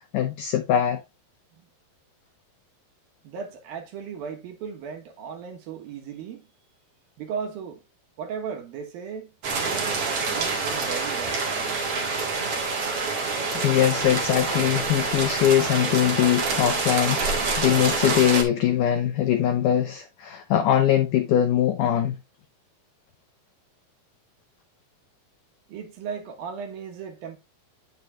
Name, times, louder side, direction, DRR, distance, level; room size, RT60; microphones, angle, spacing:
voice 1, 0.1-1.0 13.5-22.2, left 11 dB, 85° left, 1.8 m, -22 dB
voice 2, 3.2-6.5 7.2-7.8 8.2-9.3 9.6-11.4 25.7-27.4, right 6 dB, 70° right, 2.9 m, -36 dB
sound 1, 9.4-18.4, right 4 dB, 45° right, 2.3 m, -26 dB
9.1 x 6.8 x 2.4 m
omnidirectional pair, 4.6 m